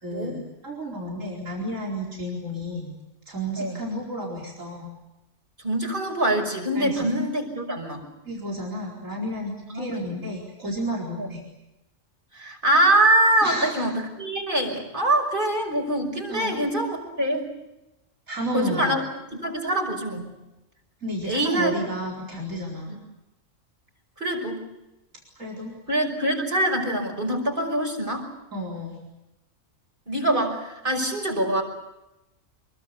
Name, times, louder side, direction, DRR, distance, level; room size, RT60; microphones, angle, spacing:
voice 1, 0.0-2.9 3.3-4.9 6.7-7.1 8.2-11.4 13.4-13.9 16.3-16.6 18.3-19.0 21.0-23.0 25.4-25.7 28.5-29.0, equal, 80° right, -2 dB, 5.0 m, -32 dB
voice 2, 5.6-8.0 9.7-9.9 11.2-11.3 12.3-17.5 18.5-19.1 19.4-20.3 21.2-21.7 22.9-23.0 24.2-24.6 25.9-28.3 30.1-31.6, right 1 dB, 40° right, 2 dB, 6.1 m, -24 dB
26.0 x 22.5 x 8.3 m, 0.96 s
omnidirectional pair, 1.3 m